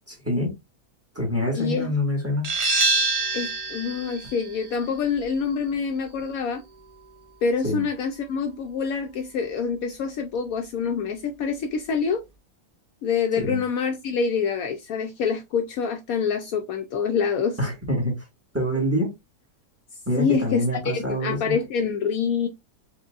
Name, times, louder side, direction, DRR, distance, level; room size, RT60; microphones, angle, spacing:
voice 1, 0.1-0.5 1.1-2.5 7.6-7.8 13.4-13.6 17.6-18.1 18.5-19.1 20.0-21.6, equal, 10° right, 1.4 m, -25 dB
voice 2, 1.5-1.9 3.3-6.6 7.4-12.2 13.0-17.6 20.2-20.6 20.9-22.5, left 6 dB, 70° left, 0.9 m, -26 dB
sound 1, 2.4-7.9, right 3 dB, 65° right, 0.4 m, -28 dB
4.6 x 2.6 x 2.4 m
omnidirectional pair, 1.7 m